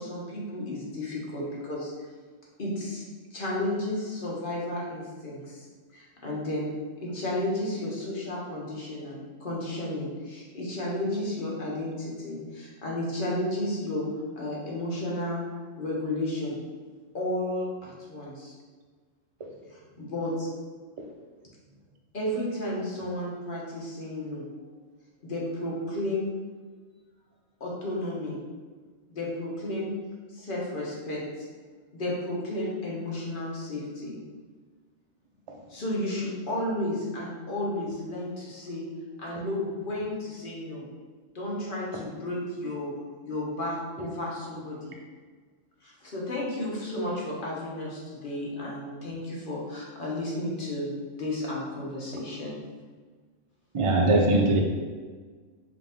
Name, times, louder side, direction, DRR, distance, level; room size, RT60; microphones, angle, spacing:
voice 1, 0.0-1.9 2.6-3.0 3.3-5.7 5.9-6.7 7.0-14.1 14.4-16.5 17.1-18.5 19.7-20.5 22.1-24.6 25.2-26.2 27.6-28.4 29.1-29.9 30.3-31.5 31.9-34.2 35.7-38.8 39.2-40.8 41.3-42.9 43.2-44.9 45.8-50.9 51.2-52.6, left 1 dB, 45° left, -5 dB, 1.2 m, -32 dB
voice 2, 53.7-54.6, right 2 dB, 50° right, 1 dB, 0.3 m, -21 dB
5.1 x 2.7 x 3.5 m, 1.5 s
omnidirectional pair, 1.3 m